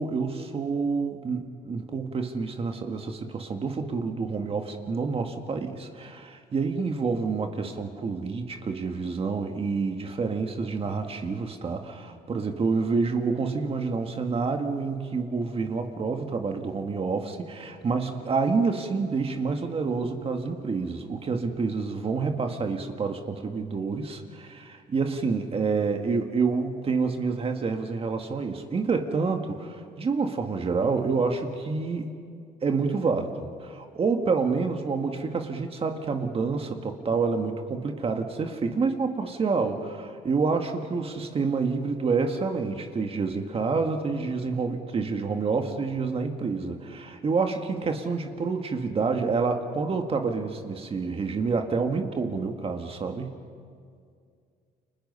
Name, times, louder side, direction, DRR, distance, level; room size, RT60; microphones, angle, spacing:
voice 1, 0.0-32.1 32.6-53.3, right 4 dB, 35° right, 5 dB, 1.8 m, -28 dB
30.0 x 24.5 x 5.6 m, 2.2 s
cardioid pair, 110°, 17 cm